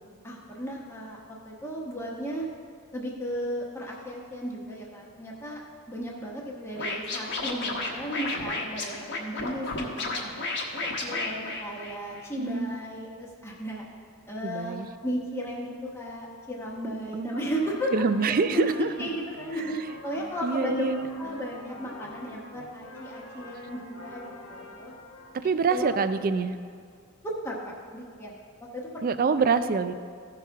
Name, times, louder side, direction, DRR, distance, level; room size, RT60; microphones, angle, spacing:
voice 1, 0.2-2.4 2.9-5.6 5.9-10.5 10.8-13.8 14.3-19.8 20.0-20.8 21.2-24.9 25.7-26.0 27.2-29.0, equal, 10° left, -3 dB, 1.0 m, -35 dB
Scratching (performance technique), 6.8-12.2, left 3 dB, 55° left, 1.2 m, -32 dB
voice 2, 12.4-12.7 14.4-14.9 17.1-17.5 17.9-19.1 20.4-21.1 25.3-26.6 29.0-29.9, right 5 dB, 45° right, 11 dB, 0.4 m, -26 dB
sound 1, 17.3-25.4, left 1 dB, 75° left, 1.4 m, -45 dB
15.0 x 5.9 x 3.6 m, 2.2 s
head